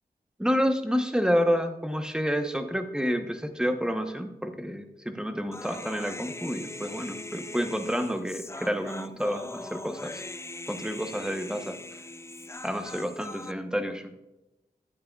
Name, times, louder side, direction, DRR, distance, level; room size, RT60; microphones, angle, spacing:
voice 1, 0.4-10.2 10.7-11.8 12.6-14.1, equal, 5° right, 6 dB, 0.9 m, -29 dB
Human voice, 5.5-13.5, left 2 dB, 15° left, 0.4 m, -41 dB
12.5 x 9.5 x 2.4 m, 0.96 s
wide cardioid pair, 75°, 17 cm